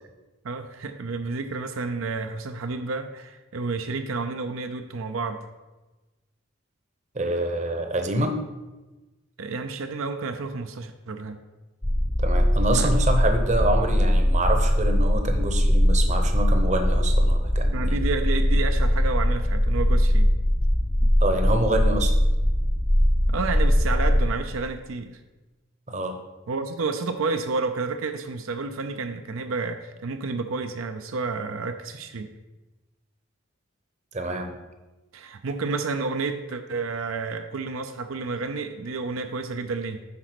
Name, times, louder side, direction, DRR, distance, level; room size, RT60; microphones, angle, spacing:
voice 1, 0.4-5.5 9.4-11.4 12.7-12.9 17.7-20.3 21.0-21.1 23.3-25.2 26.5-32.3 35.1-40.1, right 4 dB, 80° right, 7 dB, 0.5 m, -30 dB
voice 2, 7.1-8.4 12.2-18.0 21.2-22.1 25.9-26.1 34.1-34.5, right 1 dB, 35° right, 5 dB, 0.8 m, -26 dB
sound 1, 11.8-24.3, equal, 10° left, 0.4 m, -21 dB
9.6 x 4.1 x 5.9 m, 1.1 s
head